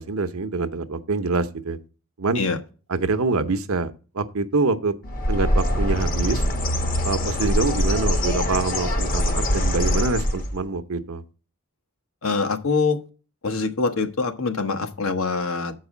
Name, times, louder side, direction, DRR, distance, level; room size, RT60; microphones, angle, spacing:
voice 1, 0.0-1.8 2.2-2.4 2.9-4.9 5.3-6.5 7.0-11.2, right 3 dB, 80° right, 0.8 m, -25 dB
Bird, 5.0-10.6, equal, 40° left, 1.0 m, -23 dB
voice 2, 12.2-13.0 13.4-15.7, left 4 dB, 70° left, 1.1 m, -24 dB
7.4 x 4.8 x 7.1 m
head